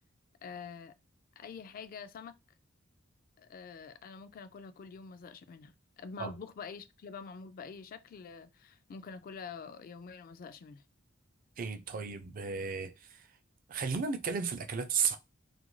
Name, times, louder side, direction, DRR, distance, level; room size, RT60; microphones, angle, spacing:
voice 1, 0.4-1.0 1.4-2.3 3.4-10.8, left 5 dB, 45° left, 0.3 m, -46 dB
voice 2, 11.6-13.3 13.7-15.2, right 6 dB, 45° right, 0.4 m, -34 dB
2.4 x 2.2 x 3.0 m
head